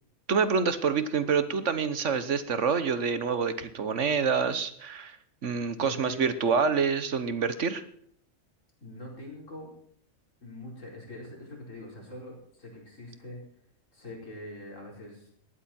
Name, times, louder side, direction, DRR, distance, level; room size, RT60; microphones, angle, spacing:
voice 1, 0.3-5.2 5.4-7.8, right 5 dB, 60° right, 12 dB, 1.4 m, -27 dB
voice 2, 5.8-6.7 8.8-9.7 10.4-13.4 13.9-15.3, left 1 dB, 65° left, -1 dB, 4.9 m, -43 dB
18.5 x 13.0 x 4.4 m, 0.66 s
omnidirectional pair, 1.4 m